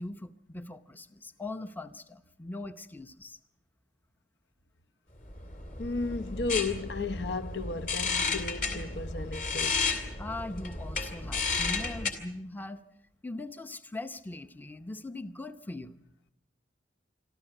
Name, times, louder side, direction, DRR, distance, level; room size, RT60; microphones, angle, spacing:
voice 1, 0.0-3.4 10.2-12.8 13.2-15.9, left 2 dB, 10° left, 0.7 m, -40 dB
sound 1, 5.3-12.1, left 4 dB, 45° left, 2.8 m, -33 dB
voice 2, 5.8-9.8, left 3 dB, 65° left, 0.9 m, -34 dB
25.5 x 14.0 x 9.0 m
head